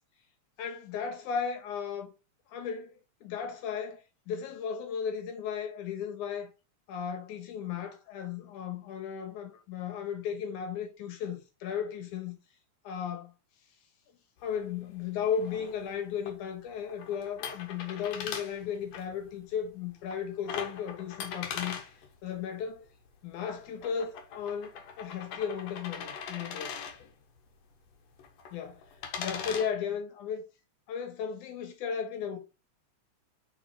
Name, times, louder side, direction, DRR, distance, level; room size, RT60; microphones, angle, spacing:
voice 1, 0.6-2.1 2.5-2.9 3.2-6.5 6.9-12.4 12.8-13.3 14.4-21.8 22.2-22.9 23.2-26.7 28.5-28.8 29.2-30.4 30.9-32.4, left 7 dB, 90° left, 2.8 m, -35 dB
sound 1, 14.4-29.7, left 6 dB, 70° left, 2.1 m, -42 dB
4.9 x 4.6 x 4.2 m
omnidirectional pair, 3.4 m